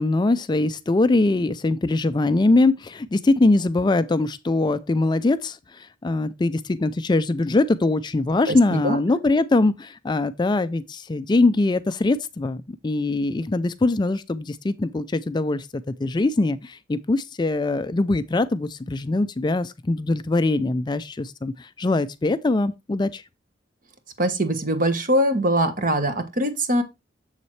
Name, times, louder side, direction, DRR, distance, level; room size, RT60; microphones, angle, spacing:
voice 1, 0.0-15.7 16.0-23.2, left 2 dB, 25° left, 0.4 m, -22 dB
voice 2, 8.5-9.0 24.2-26.8, right 1 dB, 45° right, 1.3 m, -22 dB
7.3 x 6.9 x 3.2 m
head